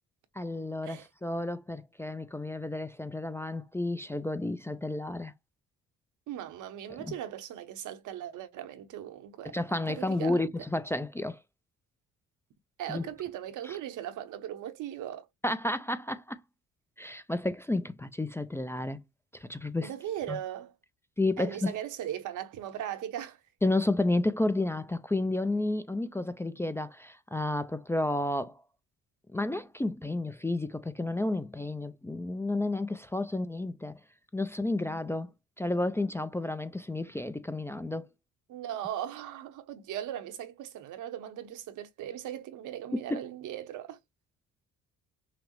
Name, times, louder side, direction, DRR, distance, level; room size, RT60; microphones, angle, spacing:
voice 1, 0.4-5.3 6.9-7.1 9.4-11.4 12.9-13.1 13.6-13.8 15.4-16.4 17.0-19.0 19.3-19.9 20.3-20.4 21.2-21.7 23.6-28.6 29.3-34.0 34.3-35.3 35.6-38.1 42.9-43.2, left 2 dB, 10° left, 0.3 m, -31 dB
voice 2, 6.3-9.6 9.9-10.3 12.8-15.3 19.8-20.7 21.4-23.4 38.5-44.0, right 11 dB, 85° right, 0.9 m, -38 dB
5.8 x 2.0 x 3.1 m
cardioid pair, 90°, 30 cm